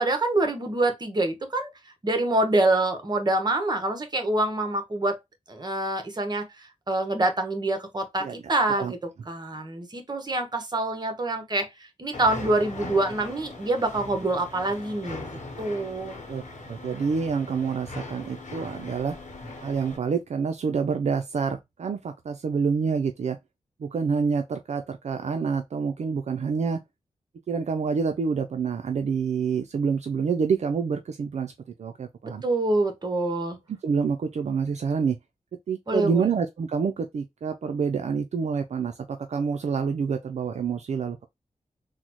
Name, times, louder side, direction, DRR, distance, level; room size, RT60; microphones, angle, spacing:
voice 1, 0.0-1.7 2.0-5.2 5.5-16.2 32.4-33.6 35.9-36.3, right 2 dB, 35° right, 0.9 m, -26 dB
sound 1, 12.1-20.0, left 2 dB, 90° left, 1.0 m, -40 dB
voice 2, 16.7-19.1 19.6-23.4 23.8-26.8 27.5-31.5 31.8-32.4 33.8-35.2 35.7-41.2, right 5 dB, 65° right, 0.4 m, -27 dB
3.8 x 2.1 x 2.9 m
wide cardioid pair, 75°, 12 cm